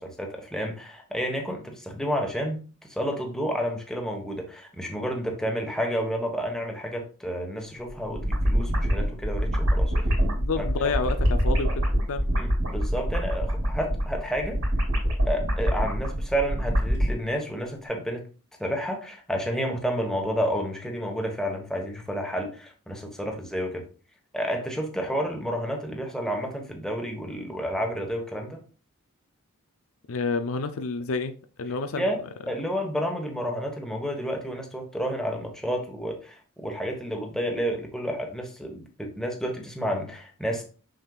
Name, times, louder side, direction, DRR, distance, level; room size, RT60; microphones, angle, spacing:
voice 1, 0.0-2.6 2.9-9.9 10.6-10.7 12.4-14.6 15.3-18.2 18.6-23.8 24.3-28.6 31.9-32.2 32.5-40.6, equal, ahead, 1.3 m, -30 dB
sound 1, 7.9-17.1, equal, 65° right, 2.9 m, -25 dB
voice 2, 10.4-12.2 30.1-31.3 31.6-32.1, left 4 dB, 65° left, 0.5 m, -29 dB
6.4 x 6.4 x 2.4 m
head